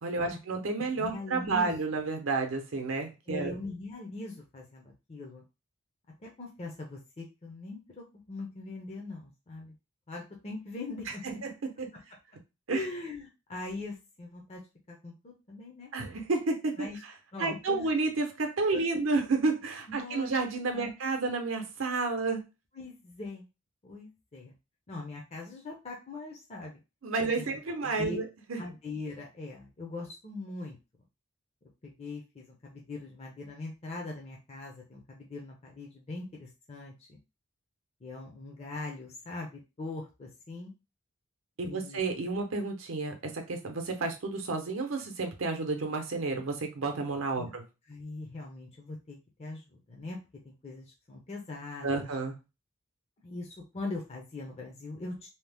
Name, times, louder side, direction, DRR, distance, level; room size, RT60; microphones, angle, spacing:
voice 1, 0.0-3.6 11.2-11.9 12.7-12.9 15.9-16.9 17.4-22.5 27.0-28.2 28.5-28.6 41.6-47.6 51.8-52.3, right 3 dB, 70° right, 4 dB, 0.7 m, -31 dB
voice 2, 1.0-1.8 3.3-5.4 6.2-9.7 10.1-11.2 12.7-14.6 14.9-15.9 16.8-17.0 17.3-17.9 18.7-18.8 19.9-20.3 20.7-20.9 22.7-23.5 23.8-24.5 24.9-26.8 27.4-28.2 28.6-30.8 31.8-37.2 38.0-40.7 41.6-42.0 47.4-47.5 47.9-50.2 50.4-52.1 53.2-55.3, left 2 dB, 30° left, -1 dB, 0.6 m, -41 dB
2.8 x 2.0 x 3.4 m, 0.27 s
head